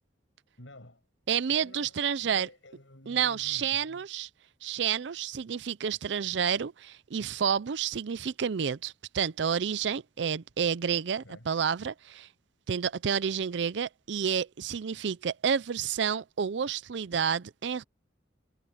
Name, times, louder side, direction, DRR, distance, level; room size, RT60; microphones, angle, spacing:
voice 1, 0.6-1.0 1.3-4.1 11.2-11.5, left 1 dB, 90° left, 8.0 m, -51 dB
voice 2, 1.3-2.5 3.1-4.3 4.6-12.3 12.7-17.8, right 7 dB, 70° right, 0.5 m, -30 dB
head